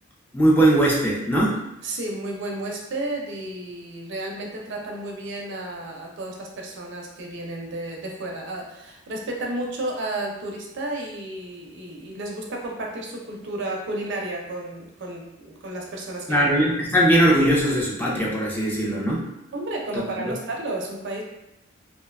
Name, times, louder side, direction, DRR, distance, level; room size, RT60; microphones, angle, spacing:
voice 1, 0.3-1.6 16.3-19.2 20.3-20.4, right 1 dB, 10° left, -4 dB, 0.4 m, -20 dB
voice 2, 1.8-16.5 19.5-21.2, right 1 dB, 65° right, 0 dB, 0.5 m, -32 dB
2.5 x 2.2 x 2.3 m, 0.86 s
head